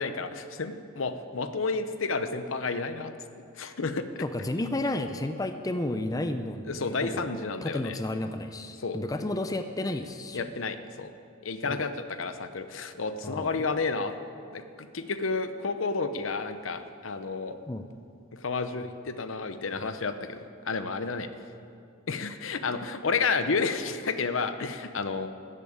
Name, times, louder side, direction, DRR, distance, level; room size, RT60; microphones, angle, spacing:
voice 1, 0.0-3.1 3.6-4.2 6.7-8.0 8.8-9.0 10.3-11.1 11.4-14.1 14.5-17.6 18.3-20.4 20.7-21.3 22.1-25.3, left 4 dB, 70° left, 10 dB, 0.8 m, -31 dB
voice 2, 4.2-7.3 7.6-10.5 11.6-11.8 13.2-13.6 17.7-17.9, left 1 dB, 15° left, 8 dB, 0.5 m, -32 dB
13.5 x 8.6 x 8.7 m, 2.4 s
head